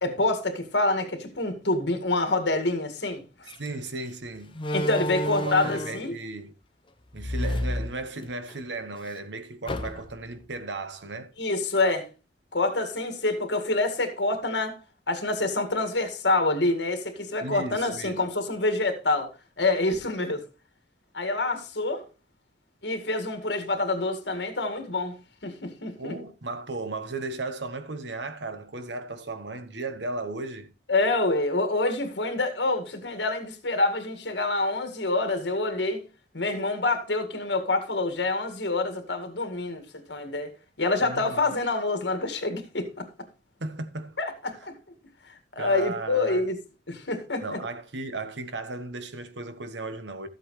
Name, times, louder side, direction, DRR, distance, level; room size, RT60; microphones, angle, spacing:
voice 1, 0.0-3.2 4.7-6.1 11.4-12.1 12.5-14.8 15.1-19.3 19.6-20.4 21.1-22.0 22.8-26.2 30.9-36.0 36.3-39.8 40.1-40.5 40.8-43.1 44.2-44.7 45.3-46.6 46.9-47.6, left 2 dB, 70° left, 2.0 m, -27 dB
Slam, 3.5-3.7 4.5-6.1 7.1-8.6 8.9-9.0 9.7-10.3, left 1 dB, 30° left, 0.9 m, -30 dB
voice 2, 3.6-4.6 5.3-6.5 7.1-11.3 17.4-18.2 26.0-30.7 41.1-41.4 43.6-44.2 45.6-46.5 47.4-50.3, right 2 dB, 80° right, 1.2 m, -35 dB
13.5 x 7.9 x 3.2 m
head